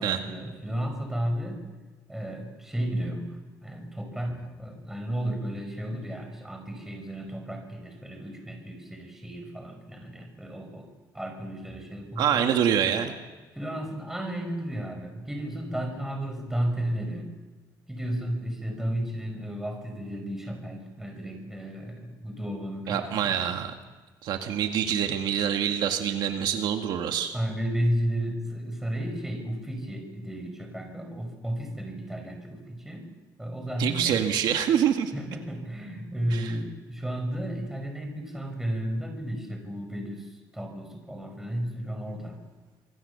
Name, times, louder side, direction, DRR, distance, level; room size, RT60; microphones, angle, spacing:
voice 1, 0.0-1.7 2.1-10.9 11.1-12.4 13.5-17.4 17.9-23.5 27.3-33.1 33.4-34.2 35.1-42.4, equal, 5° right, 4 dB, 5.7 m, -33 dB
voice 2, 12.2-13.1 22.9-23.7 24.2-27.3 33.8-35.1 36.3-36.5, right 9 dB, 70° right, 5 dB, 1.9 m, -26 dB
26.5 x 23.0 x 7.0 m, 1.3 s
cardioid pair, 145°, 8 cm